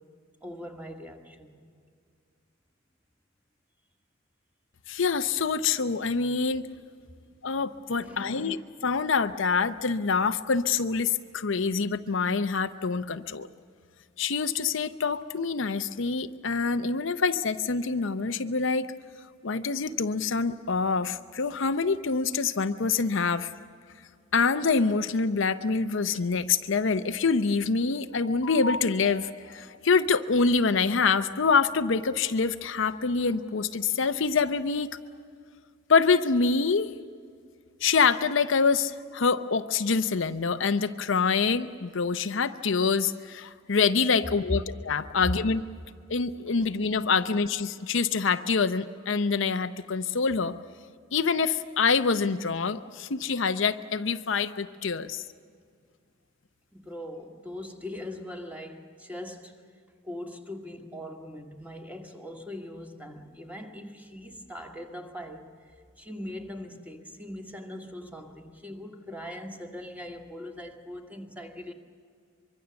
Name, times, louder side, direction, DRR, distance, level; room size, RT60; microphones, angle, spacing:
voice 1, 0.4-1.6 8.0-8.5 44.2-44.3 45.2-45.4 46.6-46.7 47.2-47.4 56.7-59.7 60.0-65.7 66.0-71.7, left 1 dB, 5° right, 1.8 m, -40 dB
voice 2, 4.9-6.7 7.4-13.5 14.2-18.9 19.4-23.5 24.3-34.9 35.9-36.9 37.8-45.6 46.1-50.6 51.1-55.2, left 5 dB, 65° left, 0.7 m, -26 dB
24.0 x 23.5 x 7.0 m
head